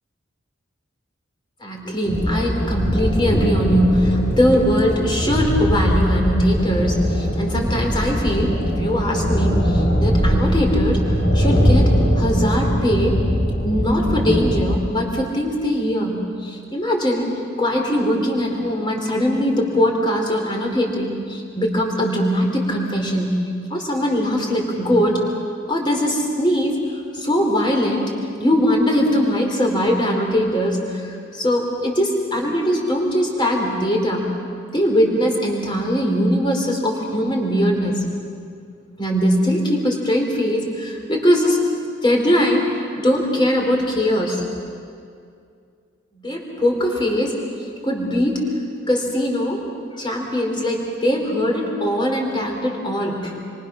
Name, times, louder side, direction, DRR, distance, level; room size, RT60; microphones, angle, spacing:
voice 1, 1.6-13.2 13.6-17.3 17.6-23.3 23.7-25.2 25.7-26.8 27.1-28.1 28.4-34.3 34.7-38.0 39.0-41.6 42.0-44.6 46.2-47.4 47.8-48.5 48.9-49.6 49.9-53.4, equal, 25° left, 0 dB, 4.0 m, -21 dB
sound 1, 2.1-14.7, equal, 70° left, 5.5 m, -20 dB
28.0 x 24.5 x 6.3 m, 2.3 s
head